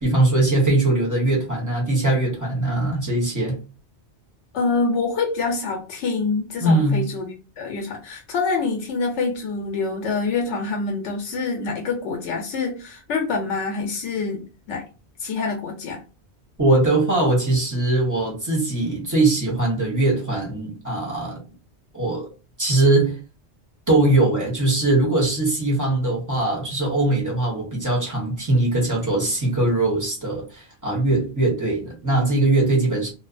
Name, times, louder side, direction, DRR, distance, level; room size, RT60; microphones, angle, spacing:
voice 1, 0.0-3.6 6.6-7.1 16.6-21.4 21.9-22.3 22.6-23.2 23.9-33.1, right 2 dB, 20° right, 0.8 m, -21 dB
voice 2, 4.5-14.9 15.2-16.0, left 4 dB, 85° left, 0.9 m, -26 dB
2.6 x 2.1 x 2.4 m
omnidirectional pair, 1.2 m